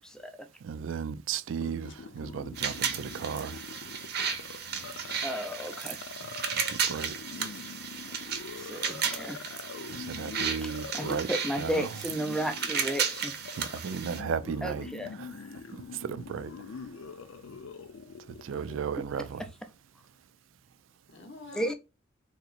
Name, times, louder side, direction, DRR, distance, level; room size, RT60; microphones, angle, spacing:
voice 1, 0.0-0.5 5.2-6.0 8.6-9.4 10.6-13.3 14.6-15.2 18.9-19.0 19.4-19.5 21.5-21.7, right 1 dB, 5° left, 0.5 m, -34 dB
voice 2, 0.6-3.6 6.5-7.1 9.9-11.3 11.6-11.7 13.6-14.9 15.2-15.3 16.0-16.5 18.4-19.4, right 6 dB, 75° right, 0.4 m, -35 dB
sound 1, 1.6-18.8, left 5 dB, 90° left, 0.4 m, -44 dB
sound 2, 2.6-14.2, right 7 dB, 55° right, 0.7 m, -34 dB
voice 3, 6.9-7.7 21.1-21.7, left 3 dB, 60° left, 0.8 m, -49 dB
3.5 x 2.9 x 2.4 m
head